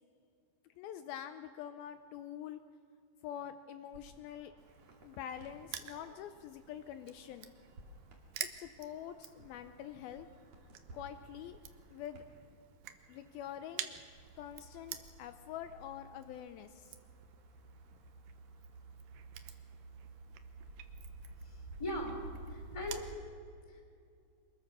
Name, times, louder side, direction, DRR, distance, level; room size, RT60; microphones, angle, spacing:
voice 1, 0.8-2.6 3.2-4.5 5.0-7.5 8.4-10.3 10.9-11.6 11.9-12.2 13.1-14.0 14.4-17.0, left 10 dB, 80° left, 10 dB, 2.4 m, -46 dB
sound 1, 3.9-12.4 12.8-23.2, right 2 dB, 45° right, 3.6 m, -54 dB
Crushing, 4.6-23.1, right 10 dB, 70° right, 2.2 m, -51 dB
voice 2, 21.4-22.2 22.5-23.1 23.7-23.8, left 1 dB, 10° left, 3 dB, 2.5 m, -40 dB
25.0 x 21.0 x 6.1 m, 2.4 s
omnidirectional pair, 4.5 m